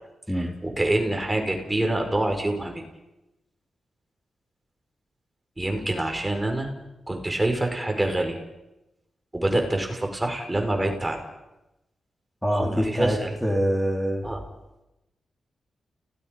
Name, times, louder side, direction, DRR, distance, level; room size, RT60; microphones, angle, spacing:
voice 1, 0.4-2.8 5.6-6.7 7.1-8.4 9.3-11.2 12.6-13.3 14.2-14.4, right 1 dB, 20° right, 4 dB, 5.2 m, -26 dB
voice 2, 12.4-14.2, equal, 5° left, -1 dB, 4.3 m, -25 dB
30.0 x 18.0 x 5.4 m, 0.96 s
cardioid pair, 50°, 0 cm